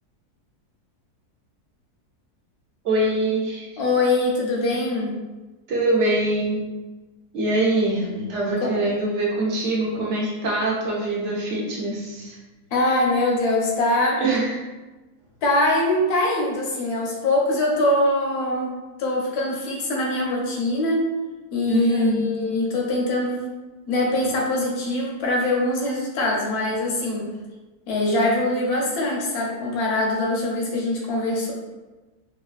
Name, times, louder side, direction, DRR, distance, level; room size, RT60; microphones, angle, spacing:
voice 1, 2.8-3.7 5.7-6.6 7.3-12.4 14.2-14.6 21.7-22.3, right 2 dB, 65° right, -3 dB, 0.8 m, -23 dB
voice 2, 3.8-5.1 8.6-8.8 12.7-14.2 15.4-18.7 19.0-21.1 21.5-23.5 23.9-27.2 27.9-31.5, left 1 dB, 75° left, -2 dB, 1.2 m, -23 dB
3.1 x 2.3 x 2.4 m, 1.2 s
omnidirectional pair, 1.6 m